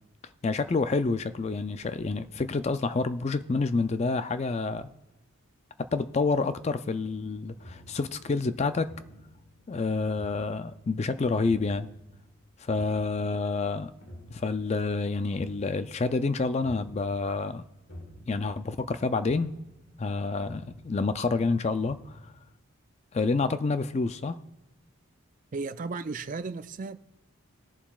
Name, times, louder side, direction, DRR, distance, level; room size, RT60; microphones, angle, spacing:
voice 1, 0.4-4.9 5.8-8.9 9.7-11.9 12.6-13.9 14.3-17.6 18.3-19.5 20.0-22.2 23.1-24.4, left 3 dB, 30° left, 0.3 m, -28 dB
sound 1, 7.4-22.4, equal, 60° left, 1.6 m, -51 dB
voice 2, 25.5-27.0, right 4 dB, 40° right, 0.4 m, -34 dB
19.5 x 7.1 x 2.4 m
head